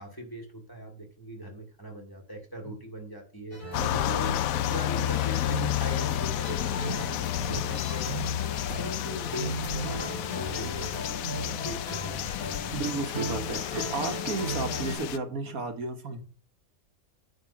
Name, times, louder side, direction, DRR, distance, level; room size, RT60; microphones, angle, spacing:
voice 1, 0.0-3.6 4.0-4.4 4.7-10.9 11.3-12.4 12.7-12.8, equal, 15° left, 2 dB, 2.4 m, -40 dB
sound 1, 3.5-15.0, right 1 dB, 35° left, 4.1 m, -37 dB
sound 2, 3.7-15.2, left 12 dB, 80° left, 1.0 m, -31 dB
voice 2, 3.8-4.1 7.5-7.8 12.7-16.2, right 3 dB, 85° right, 6 dB, 1.9 m, -33 dB
9.4 x 3.8 x 7.1 m, 0.39 s
omnidirectional pair, 1.5 m